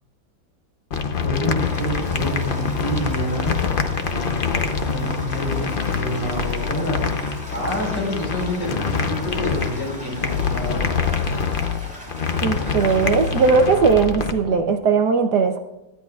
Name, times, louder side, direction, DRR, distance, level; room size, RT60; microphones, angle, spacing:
sound 1, 0.9-14.3, left 5 dB, 90° left, 0.4 m, -25 dB
voice 1, 1.2-3.7 4.9-10.9, equal, 70° left, -2 dB, 5.6 m, -28 dB
Toilet flush, 1.6-13.7, equal, 5° right, 4.8 m, -39 dB
voice 2, 12.4-15.6, right 5 dB, 65° right, 6 dB, 1.2 m, -18 dB
18.5 x 13.0 x 2.4 m, 0.99 s
omnidirectional pair, 2.1 m